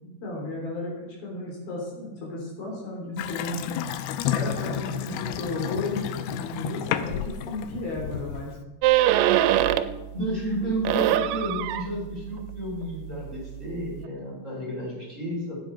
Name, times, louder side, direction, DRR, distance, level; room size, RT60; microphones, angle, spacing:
voice 1, 0.0-3.7 4.3-8.5, left 2 dB, 65° left, -2 dB, 5.1 m, -34 dB
Water tap faucet / Sink (filling or washing) / Bathtub (filling or washing), 3.2-8.6, left 10 dB, 85° left, 2.6 m, -31 dB
sound 1, 8.8-10.1 10.4-14.1, right 13 dB, 80° right, 2.5 m, -24 dB
voice 2, 10.1-15.6, right 1 dB, 20° right, -3 dB, 2.7 m, -31 dB
15.5 x 9.2 x 4.5 m, 1.1 s
omnidirectional pair, 4.7 m